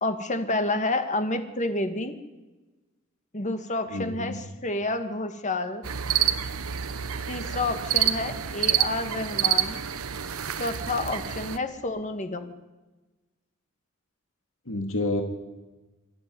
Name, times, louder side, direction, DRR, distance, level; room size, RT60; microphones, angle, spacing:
voice 1, 0.0-2.1 3.3-5.8 7.3-9.8 10.6-12.5, left 2 dB, 35° left, 8 dB, 2.0 m, -29 dB
voice 2, 3.9-4.4 14.7-15.2, left 2 dB, 65° left, 4 dB, 2.3 m, -29 dB
sound 1, 5.8-11.6, right 10 dB, 85° right, 1.0 m, -28 dB
26.0 x 14.0 x 9.5 m, 1.2 s
head